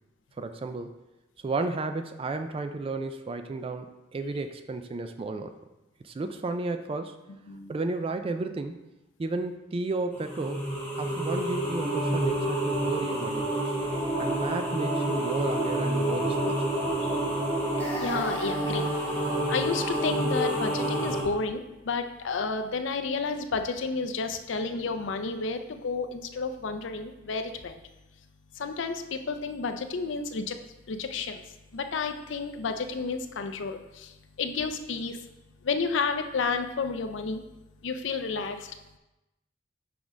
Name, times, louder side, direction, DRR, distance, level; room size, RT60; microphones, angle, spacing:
voice 1, 0.4-0.9 1.4-5.5 6.0-7.2 7.7-8.8 9.2-10.7 11.0-13.4 14.2-16.7, right 3 dB, 30° right, 8 dB, 0.3 m, -33 dB
sound 1, 10.2-21.2, right 1 dB, 10° left, 1.2 m, -28 dB
voice 2, 13.9-14.2 17.0-17.2 18.0-18.9 19.5-27.8 28.6-30.6 30.9-31.4 31.7-35.2 35.6-37.4 37.8-38.8, left 4 dB, 70° left, 7 dB, 0.5 m, -31 dB
6.0 x 3.6 x 5.0 m, 0.99 s
head